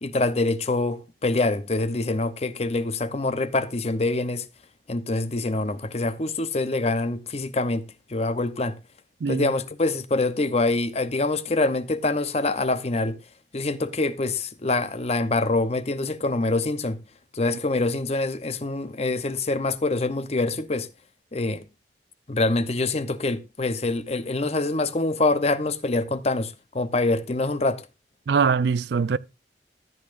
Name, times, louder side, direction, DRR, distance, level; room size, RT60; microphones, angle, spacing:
voice 1, 0.0-4.4 4.9-7.8 8.1-8.8 9.3-13.2 13.5-17.0 17.3-20.9 21.3-21.7 22.3-27.8, left 2 dB, 35° left, 0.7 m, -25 dB
voice 2, 9.2-9.5 28.3-29.2, right 5 dB, 75° right, 0.4 m, -22 dB
13.5 x 9.7 x 2.5 m
head